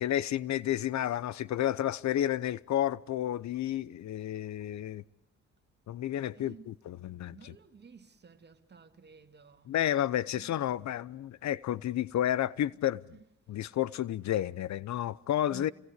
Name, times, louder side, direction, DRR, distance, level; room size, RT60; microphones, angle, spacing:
voice 1, 0.0-5.0 5.9-7.5 9.7-13.0 13.5-15.7, left 12 dB, 65° left, 0.9 m, -31 dB
voice 2, 6.3-6.8 7.3-9.8 10.3-10.6 12.7-12.8 15.5-15.7, right 6 dB, 35° right, 2.7 m, -53 dB
29.0 x 20.5 x 8.3 m
cardioid pair, 90°, 30 cm